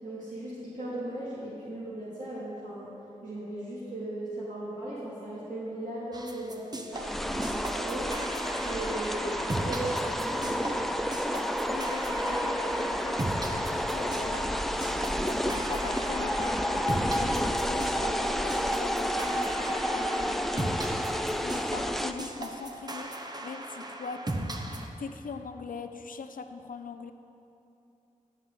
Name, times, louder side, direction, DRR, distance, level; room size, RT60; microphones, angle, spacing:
voice 1, 0.0-2.9 3.2-8.2 8.6-10.9, right 1 dB, 70° right, -9 dB, 2.2 m, -37 dB
sound 1, 6.1-24.9, right 1 dB, 30° right, 0.8 m, -38 dB
sound 2, 6.9-22.1, equal, ahead, 0.4 m, -30 dB
voice 2, 11.7-14.4 15.2-20.8 21.2-24.6 25.0-27.1, left 5 dB, 85° left, 8 dB, 0.5 m, -41 dB
15.0 x 7.7 x 3.8 m, 2.8 s
wide cardioid pair, 75°, 14 cm